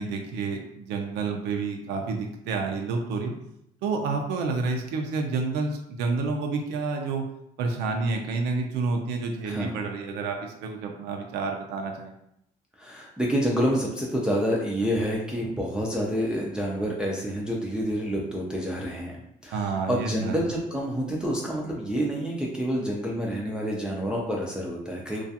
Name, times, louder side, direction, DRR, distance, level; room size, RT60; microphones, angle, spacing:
voice 1, 0.0-3.3 3.8-7.3 7.6-12.1 19.5-20.4, right 4 dB, 85° right, 2 dB, 0.4 m, -29 dB
voice 2, 9.4-9.8 12.8-19.1 19.4-25.2, equal, 5° right, -3 dB, 0.4 m, -28 dB
2.3 x 2.3 x 2.7 m, 0.78 s
cardioid pair, 110°, 17 cm